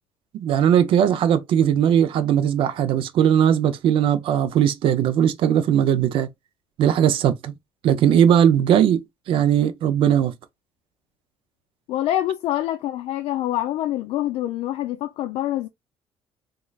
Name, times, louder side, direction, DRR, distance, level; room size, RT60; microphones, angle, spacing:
voice 1, 0.3-6.3 6.8-7.5 7.8-10.3, right 9 dB, 60° right, 0.5 m, -19 dB
voice 2, 11.9-15.7, left 13 dB, 85° left, 0.4 m, -25 dB
3.7 x 3.2 x 2.3 m
cardioid pair, 150°, 10 cm